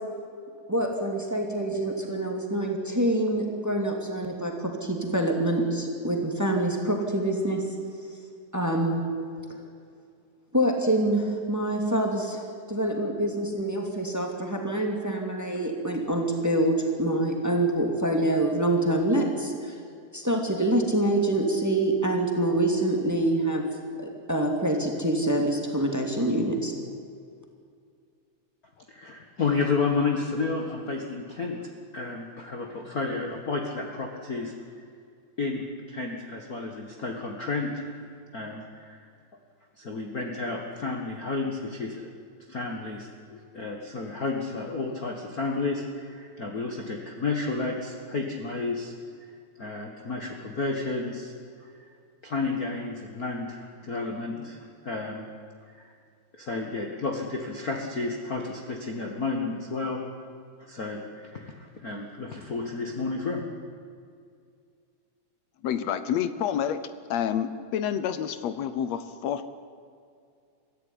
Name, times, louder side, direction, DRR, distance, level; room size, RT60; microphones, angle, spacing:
voice 1, 0.7-7.7 8.5-9.0 10.5-19.8 20.1-23.6 24.0-26.7, right 1 dB, 5° right, 2 dB, 2.3 m, -26 dB
voice 2, 28.9-34.8 35.4-37.9 38.3-39.0 39.8-42.0 42.5-48.9 49.6-51.3 51.6-51.8 52.2-55.3 55.7-55.9 56.3-60.0 60.6-63.4, left 3 dB, 35° left, 2 dB, 1.7 m, -31 dB
voice 3, 65.6-66.8 67.1-69.5, left 9 dB, 70° left, 12 dB, 2.0 m, -28 dB
23.5 x 15.0 x 9.9 m, 2.3 s
omnidirectional pair, 3.5 m